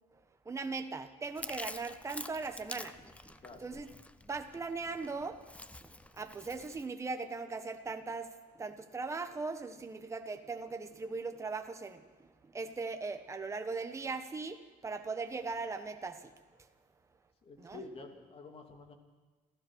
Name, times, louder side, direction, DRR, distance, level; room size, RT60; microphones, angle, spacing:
voice 1, 0.4-3.0 3.3-3.4 3.6-3.9 4.2-5.4 5.8-12.3 12.5-16.3 17.6-17.8, right 4 dB, 20° right, 6 dB, 1.2 m, -39 dB
Chewing mastication, 1.4-6.8, left 2 dB, 10° left, 0.6 m, -47 dB
voice 2, 17.4-19.0, left 3 dB, 40° left, 4 dB, 2.8 m, -49 dB
27.5 x 15.0 x 6.4 m, 1.4 s
cardioid pair, 150°, 16 cm